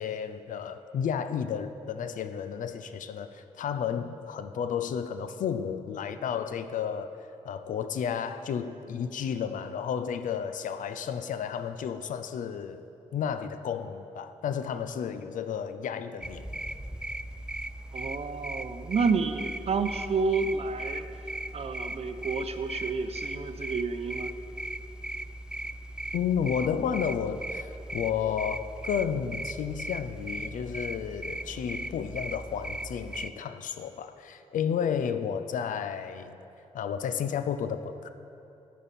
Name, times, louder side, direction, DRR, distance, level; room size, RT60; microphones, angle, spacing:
voice 1, 0.0-7.1 7.4-12.8 13.1-16.5 26.1-36.4 36.7-38.1, left 7 dB, 70° left, 11 dB, 0.5 m, -32 dB
sound 1, 16.2-33.3, right 1 dB, 5° right, 0.4 m, -38 dB
voice 2, 17.9-21.0 21.5-24.3, right 4 dB, 50° right, 9 dB, 0.7 m, -30 dB
11.5 x 7.5 x 4.2 m, 2.8 s
supercardioid pair, 40°, 14 cm